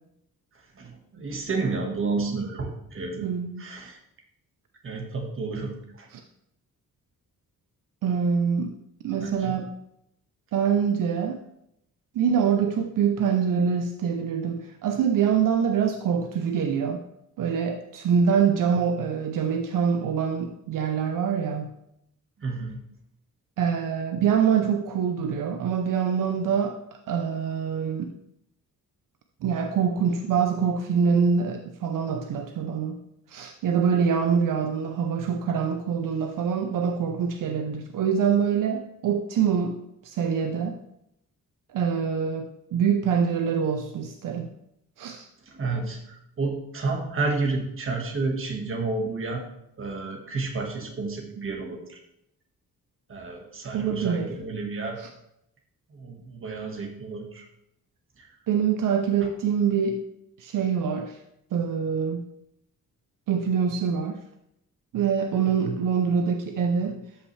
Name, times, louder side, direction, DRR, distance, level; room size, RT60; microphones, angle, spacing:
voice 1, 0.7-3.2 3.6-4.0 4.8-6.1 9.2-9.6 22.4-22.8 45.4-49.4 49.8-52.0 53.1-55.0 55.9-57.4 58.2-58.3, right 3 dB, 40° right, 2 dB, 1.5 m, -31 dB
voice 2, 3.2-3.7 8.0-8.8 9.0-9.7 10.5-11.4 12.1-17.0 17.4-21.7 23.6-28.1 29.4-33.0 33.3-39.8 40.0-40.8 41.7-44.5 45.0-45.3 53.7-54.3 55.0-55.1 58.5-60.0 60.4-61.2 61.5-62.2 63.3-64.2 64.9-67.0, right 7 dB, 75° right, 5 dB, 0.7 m, -25 dB
13.0 x 5.7 x 3.2 m, 0.79 s
wide cardioid pair, 160°, 33 cm